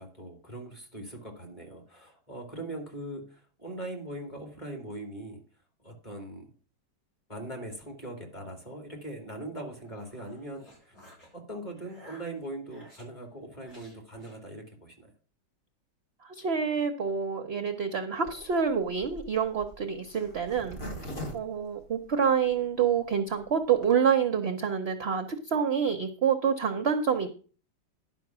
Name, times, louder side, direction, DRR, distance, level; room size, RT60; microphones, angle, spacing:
voice 1, 0.0-5.4 5.8-6.5 7.3-11.0 11.3-15.1, right 1 dB, 20° left, 2 dB, 2.4 m, -41 dB
sound 1, 9.7-11.3 11.8-13.1 13.6-14.4, equal, 55° left, 5.2 m, -55 dB
voice 2, 16.2-20.8 21.3-27.3, right 7 dB, 55° right, 7 dB, 0.7 m, -27 dB
Zipper (clothing), 18.2-22.5 23.0-23.1 23.3-23.4 23.6-23.9, equal, 35° left, 2.0 m, -41 dB
11.0 x 5.5 x 5.9 m, 0.41 s
omnidirectional pair, 1.9 m